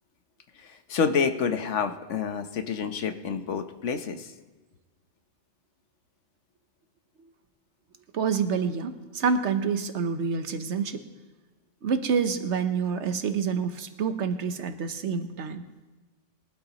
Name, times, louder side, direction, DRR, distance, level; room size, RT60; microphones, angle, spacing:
voice 1, 0.9-4.3, left 6 dB, 75° left, 8 dB, 1.2 m, -28 dB
voice 2, 8.1-11.0 11.8-15.6, right 6 dB, 70° right, 9 dB, 1.1 m, -27 dB
22.0 x 12.5 x 3.0 m, 1.2 s
omnidirectional pair, 1.2 m